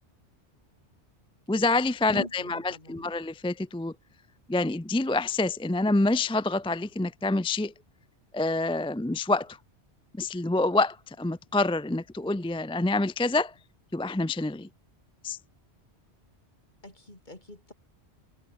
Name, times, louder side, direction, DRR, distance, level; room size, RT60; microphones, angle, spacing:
voice 1, 1.5-3.9 4.5-7.7 8.3-9.6 10.2-13.5 13.9-14.7 15.2-15.4, left 2 dB, 10° left, 0.3 m, -27 dB
voice 2, 2.1-3.0 16.8-17.7, left 1 dB, 45° left, 5.0 m, -44 dB
omnidirectional pair, 1.1 m